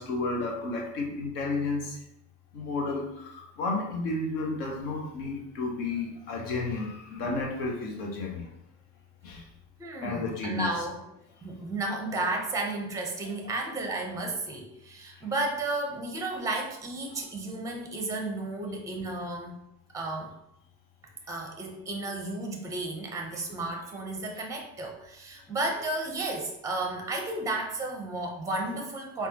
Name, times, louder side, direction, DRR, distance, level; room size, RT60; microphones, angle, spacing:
voice 1, 0.0-2.0 2.5-8.5 9.2-9.5 10.0-10.7 17.1-17.2, left 3 dB, 65° left, 0 dB, 1.0 m, -32 dB
voice 2, 9.8-11.1 11.4-19.6 19.9-20.3 21.3-29.3, right 2 dB, 5° right, 2 dB, 0.5 m, -33 dB
3.7 x 2.2 x 2.7 m, 0.83 s
hypercardioid pair, 60°, 50 cm